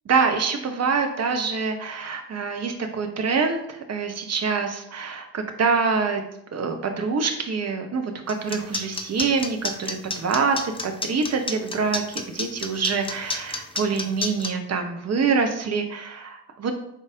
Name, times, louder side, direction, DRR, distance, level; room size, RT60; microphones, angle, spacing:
voice 1, 0.1-6.2 6.5-16.7, right 5 dB, 30° right, 5 dB, 0.9 m, -25 dB
sound 1, 8.3-14.5, left 3 dB, 10° left, 0.4 m, -29 dB
5.3 x 3.9 x 2.4 m, 0.76 s
figure-of-eight pair, 40°, 48 cm